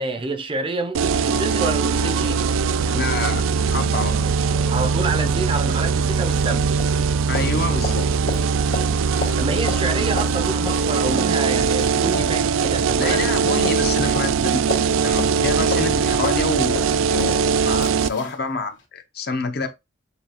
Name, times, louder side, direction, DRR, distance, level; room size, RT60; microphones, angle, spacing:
voice 1, 0.0-2.5 4.7-6.7 9.4-13.2, right 3 dB, 25° right, 0.5 m, -27 dB
sound 1, 0.9-18.1, right 5 dB, 85° right, 0.3 m, -21 dB
sound 2, 1.1-1.2 1.6-1.7 2.0-6.5 6.8-18.4 18.8-18.9, left 2 dB, 70° left, 1.8 m, -35 dB
voice 2, 2.9-4.3 7.3-8.1 13.0-14.7 15.0-16.8 17.1-19.7, left 3 dB, 50° left, 0.7 m, -27 dB
6.9 x 2.3 x 2.9 m
head